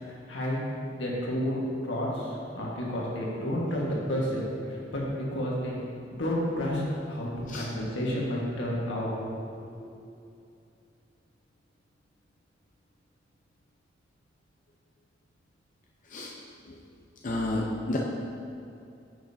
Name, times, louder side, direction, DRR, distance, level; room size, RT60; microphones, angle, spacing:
voice 1, 0.1-0.7 0.9-1.6 1.8-5.8 6.1-9.1 9.5-9.9, equal, 85° left, -4 dB, 1.6 m, -31 dB
voice 2, 17.2-18.0, left 1 dB, 45° left, -3 dB, 0.6 m, -30 dB
9.6 x 6.3 x 2.8 m, 2.6 s
head